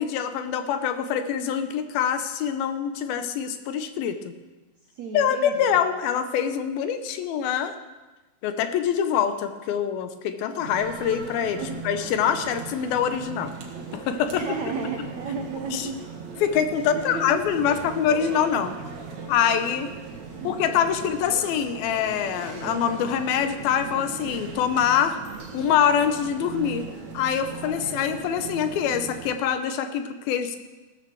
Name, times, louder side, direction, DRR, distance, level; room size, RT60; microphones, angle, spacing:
voice 1, 0.0-4.3 5.1-7.7 8.4-13.5 13.9-14.5 15.7-15.9 16.4-18.7 19.3-19.9 20.4-25.2 25.5-26.9 27.1-30.6, left 8 dB, 75° left, 9 dB, 2.5 m, -25 dB
voice 2, 5.0-5.7 11.6-11.8 14.3-16.0 16.8-17.4 17.7-17.9 20.3-20.8, right 4 dB, 75° right, 2 dB, 1.7 m, -33 dB
sound 1, 10.6-29.3, right 5 dB, 55° right, 2.5 m, -38 dB
16.5 x 13.0 x 4.6 m, 1.2 s
omnidirectional pair, 4.7 m